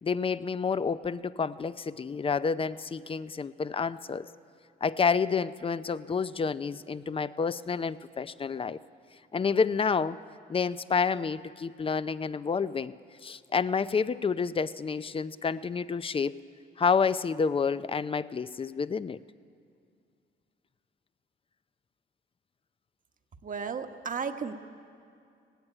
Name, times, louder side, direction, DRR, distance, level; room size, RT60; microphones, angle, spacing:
voice 1, 0.0-4.3 4.8-8.8 9.3-10.2 10.5-12.9 13.2-16.4 16.8-19.2, left 5 dB, 25° left, 15 dB, 0.5 m, -29 dB
voice 2, 23.4-24.5, right 6 dB, 40° right, 7 dB, 1.2 m, -34 dB
16.5 x 16.0 x 9.9 m, 2.4 s
cardioid pair, 90°, 20 cm